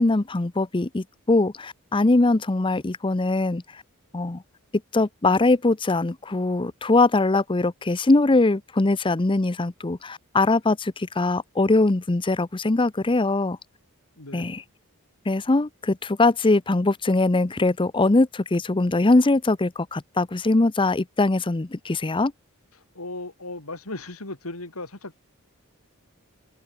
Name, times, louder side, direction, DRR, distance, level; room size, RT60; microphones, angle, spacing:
voice 1, 0.0-3.6 4.1-4.4 4.9-13.6 14.3-14.6 15.3-22.3, left 2 dB, 20° left, 0.6 m, -22 dB
voice 2, 14.2-14.5 22.7-25.2, left 2 dB, 70° left, 3.7 m, -37 dB
head